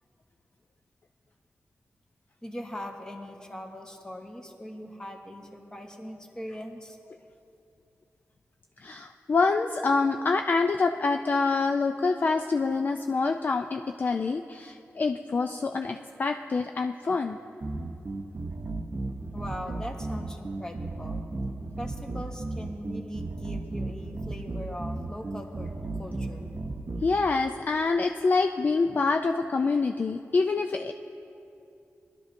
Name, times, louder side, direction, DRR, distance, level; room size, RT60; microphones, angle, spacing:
voice 1, 2.4-7.0 17.0-17.1 19.3-21.2 21.8-26.5, equal, 15° left, 2 dB, 1.2 m, -40 dB
voice 2, 8.8-17.4 27.0-30.9, left 4 dB, 40° left, 5 dB, 0.4 m, -26 dB
sound 1, 17.6-27.1, right 2 dB, 45° right, 0.8 m, -34 dB
21.5 x 12.0 x 2.6 m, 2.7 s
wide cardioid pair, 135°, 5 cm